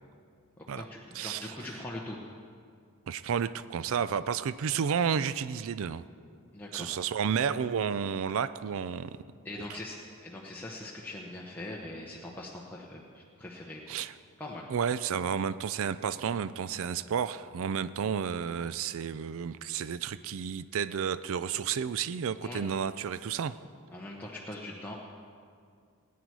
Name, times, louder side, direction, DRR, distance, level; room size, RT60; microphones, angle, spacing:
voice 1, 0.6-2.2 6.5-6.9 9.4-14.0 14.4-14.7 22.4-22.6 23.9-25.0, left 1 dB, 10° left, -4 dB, 0.9 m, -42 dB
voice 2, 1.1-1.5 3.1-6.0 6.7-9.2 9.7-9.8 13.9-14.1 14.7-23.6, right 7 dB, 65° right, 14 dB, 0.4 m, -31 dB
18.5 x 9.4 x 4.7 m, 2.3 s
head